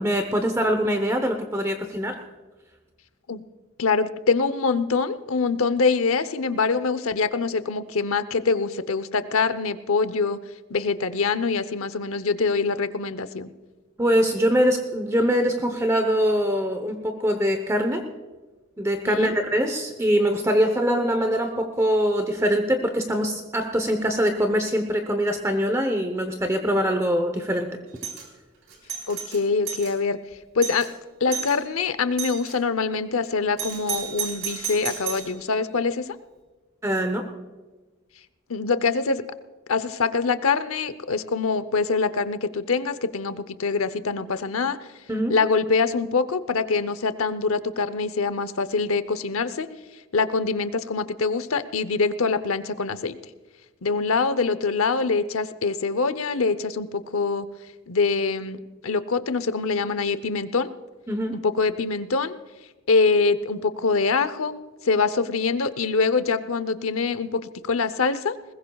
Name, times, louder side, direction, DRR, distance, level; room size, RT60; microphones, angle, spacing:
voice 1, 0.0-2.2 14.0-18.0 18.8-27.8 36.8-37.2 45.1-45.4 61.1-61.4, equal, 15° right, 5 dB, 0.9 m, -23 dB
voice 2, 3.8-10.4 10.7-13.5 19.0-19.3 29.1-30.2 30.5-30.9 31.2-36.1 38.5-39.2 39.7-44.8 45.3-49.7 50.1-53.2 53.8-57.5 57.9-60.7 61.4-62.4 62.9-68.4, left 4 dB, 80° left, 13 dB, 0.8 m, -24 dB
Doorbell, 28.0-28.3 28.7-29.9 30.3-30.4 30.6-30.9 31.3-31.6 32.2-32.5 33.6-35.3, right 7 dB, 65° right, 4.0 m, -32 dB
21.0 x 20.5 x 2.4 m, 1.3 s
head